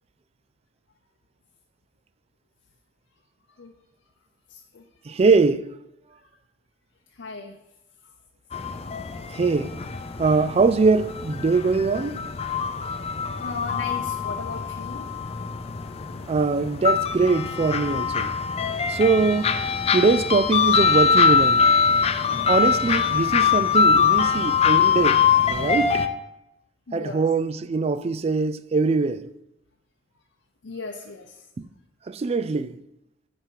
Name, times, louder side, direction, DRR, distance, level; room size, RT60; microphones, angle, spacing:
voice 1, 4.5-4.8 7.1-7.6 12.8-13.1 13.4-15.3 22.6-22.8 26.9-27.2 30.6-31.5, left 3 dB, 75° left, 0.7 m, -38 dB
voice 2, 5.1-5.7 9.3-9.8 10.2-12.2 16.3-18.3 18.9-19.6 19.9-21.7 22.5-25.2 25.5-26.1 26.9-29.3 32.1-32.8, right 4 dB, 35° right, 0.4 m, -22 dB
sound 1, 8.5-26.1, left 6 dB, 35° left, 0.5 m, -23 dB
9.2 x 5.2 x 4.6 m
head